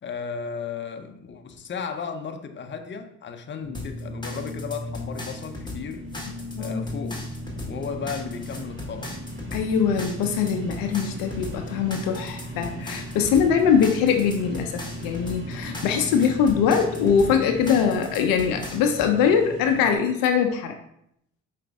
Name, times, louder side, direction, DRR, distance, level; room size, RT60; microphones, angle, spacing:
voice 1, 0.0-6.1 6.6-7.3 7.6-9.1, left 6 dB, 35° left, 6 dB, 0.6 m, -35 dB
sound 1, 3.6-20.0, equal, 35° right, 1.1 m, -37 dB
sound 2, 3.7-19.1, left 3 dB, 15° left, 1.1 m, -39 dB
voice 2, 6.6-7.1 9.5-20.7, left 7 dB, 80° left, 5 dB, 0.5 m, -22 dB
4.8 x 2.5 x 3.4 m, 0.74 s
supercardioid pair, 55°, 34 cm